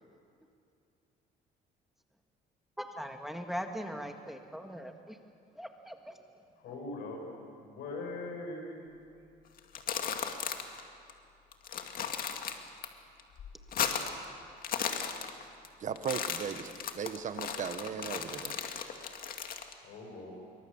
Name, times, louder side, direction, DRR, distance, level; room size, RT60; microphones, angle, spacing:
voice 1, 2.8-5.2 5.6-6.2, equal, ahead, 4 dB, 1.8 m, -40 dB
voice 2, 6.6-7.2 7.6-9.0 19.8-20.3, left 2 dB, 80° left, 1 dB, 7.6 m, -41 dB
sound 1, 9.6-10.8 11.1-11.2 11.5-12.9 13.2-14.2 14.5-15.7 16.0-19.7, left 7 dB, 60° left, 2.2 m, -35 dB
voice 3, 15.8-18.6, right 7 dB, 50° right, 10 dB, 1.4 m, -37 dB
26.0 x 24.0 x 7.3 m, 2.5 s
cardioid pair, 110°, 17 cm